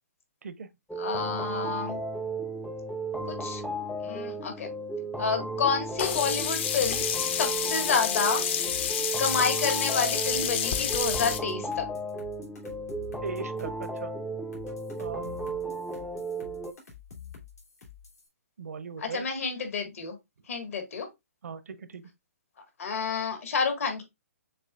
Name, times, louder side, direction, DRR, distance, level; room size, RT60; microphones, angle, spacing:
sound 1, 0.9-16.7, right 2 dB, ahead, 0.3 m, -35 dB
voice 1, 1.0-2.0 3.2-3.6 4.0-4.7 5.2-8.4 9.2-11.9 19.0-20.2 20.5-21.1 22.8-24.0, left 5 dB, 65° left, 1.7 m, -29 dB
Sink (filling or washing), 6.0-11.4, left 8 dB, 45° left, 0.6 m, -29 dB
sound 2, 6.2-9.8 10.3-14.0 14.5-18.3, left 7 dB, 85° left, 2.7 m, -48 dB
voice 2, 13.2-14.1 15.0-15.5 18.6-19.2 21.4-22.1, right 5 dB, 75° right, 0.7 m, -39 dB
6.7 x 3.0 x 2.4 m
hypercardioid pair, 140°, 8 cm